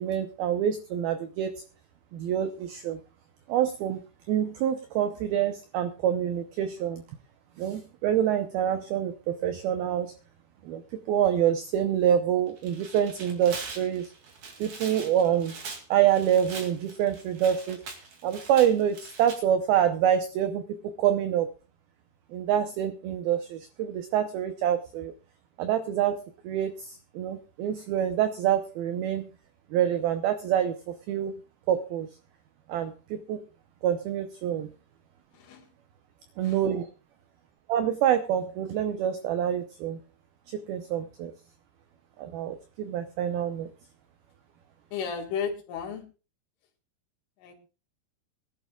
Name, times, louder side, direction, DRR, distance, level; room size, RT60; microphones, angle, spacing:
voice 1, 0.0-1.5 2.1-3.0 3.5-4.0 4.3-7.0 7.6-10.1 10.6-10.8 11.1-14.1 14.6-15.6 15.9-17.8 18.2-21.5 22.3-25.1 25.6-26.2 26.4-29.3 29.7-31.3 31.7-32.1 32.7-33.4 33.8-34.7 36.4-36.9 37.7-40.0 40.5-41.3 42.2-43.7, right 10 dB, 90° right, 9 dB, 2.1 m, -26 dB
Tearing, 12.5-19.4, right 4 dB, 45° right, 3.2 m, -42 dB
voice 2, 35.3-35.7 36.4-36.6 44.9-46.0 47.4-47.6, left 6 dB, 90° left, 3 dB, 4.6 m, -34 dB
24.0 x 11.5 x 2.3 m, 0.33 s
omnidirectional pair, 5.4 m